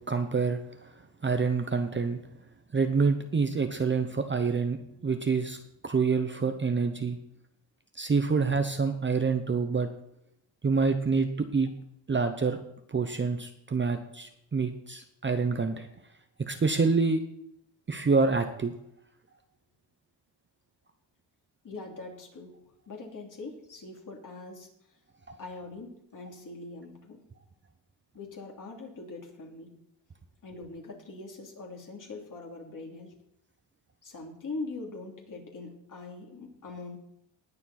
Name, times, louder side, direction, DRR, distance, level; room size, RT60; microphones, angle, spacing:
voice 1, 0.1-0.9 1.2-2.2 2.7-5.6 5.8-7.2 7.9-9.9 10.6-11.7 12.1-12.6 12.9-15.9 16.4-17.2 17.9-18.7, right 4 dB, 25° right, 7 dB, 0.8 m, -27 dB
voice 2, 21.6-22.6 22.9-24.7 25.4-27.2 28.1-29.8 30.4-33.1 34.0-37.0, left 3 dB, 40° left, 0 dB, 3.0 m, -42 dB
19.5 x 7.0 x 4.2 m, 0.78 s
cardioid pair, 130°, 47 cm